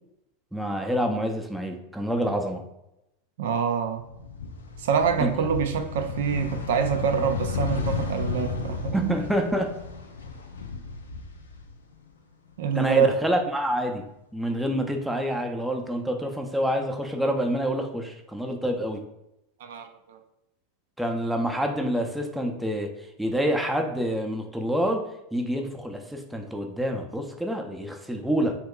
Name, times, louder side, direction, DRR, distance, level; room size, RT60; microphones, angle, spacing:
voice 1, 0.5-2.6 5.2-5.3 8.9-9.8 12.8-14.0 14.3-19.0 21.0-22.9 23.2-28.6, equal, 5° right, 3 dB, 0.5 m, -27 dB
voice 2, 3.4-4.0 4.8-9.1 12.6-13.1 19.6-20.2, right 7 dB, 70° right, 6 dB, 0.3 m, -26 dB
sound 1, 4.0-12.1 12.5-13.6, left 5 dB, 90° left, 0.4 m, -33 dB
3.0 x 2.3 x 3.6 m, 0.86 s
hypercardioid pair, 95°, 0 cm